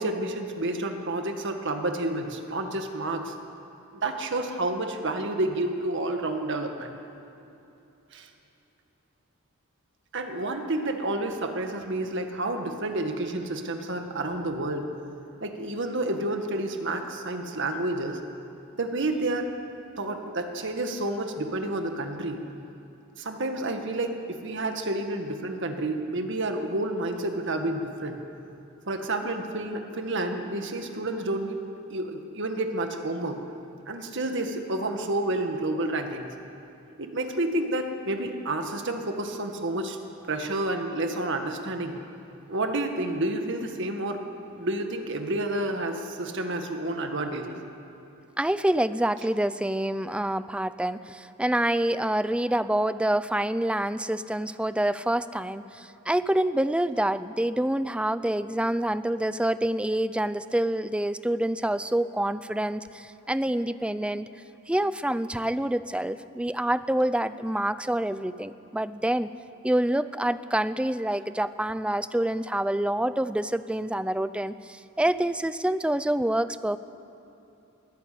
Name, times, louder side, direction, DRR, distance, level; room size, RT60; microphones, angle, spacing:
voice 1, 0.0-3.3 4.0-6.9 8.1-8.3 10.1-14.9 15.4-18.2 18.8-19.5 20.0-22.4 23.2-28.2 28.9-31.6 31.9-33.4 33.9-36.3 37.0-40.0 40.3-42.0 42.5-44.2 44.6-47.6, right 2 dB, 60° right, 5 dB, 1.9 m, -30 dB
voice 2, 48.4-64.3 64.7-69.3 69.6-76.8, right 1 dB, 5° right, 14 dB, 0.5 m, -27 dB
22.0 x 15.0 x 8.6 m, 2.9 s
head